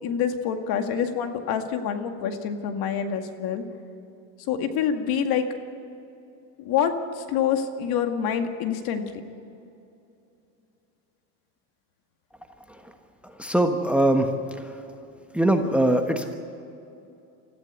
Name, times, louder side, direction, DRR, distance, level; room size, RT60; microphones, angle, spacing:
voice 1, 0.0-3.6 4.5-5.5 6.6-9.1, left 8 dB, 50° left, 6 dB, 2.2 m, -26 dB
voice 2, 13.4-14.3 15.3-16.3, right 1 dB, 5° right, 5 dB, 1.2 m, -21 dB
25.0 x 14.5 x 8.2 m, 2.7 s
supercardioid pair, 125°, 46 cm